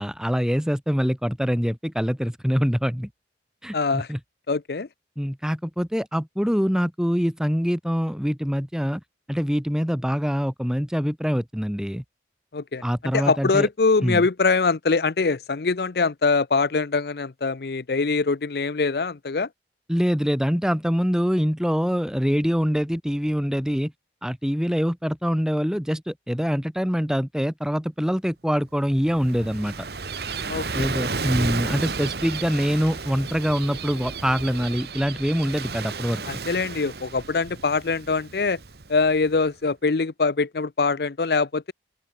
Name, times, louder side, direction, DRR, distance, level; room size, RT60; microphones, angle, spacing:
voice 1, 0.0-3.1 3.6-4.2 5.2-9.0 9.3-12.0 12.8-13.7 14.0-14.2 19.9-23.9 24.2-29.9 30.7-36.2, equal, 5° right, 2.0 m, -24 dB
voice 2, 3.7-4.1 4.5-4.9 12.5-12.8 13.1-19.5 30.5-30.9 36.3-38.6 38.9-41.7, left 4 dB, 60° left, 0.6 m, -23 dB
Gull seagull / Waves surf, 28.8-39.4, right 4 dB, 65° right, 1.3 m, -33 dB
open air
head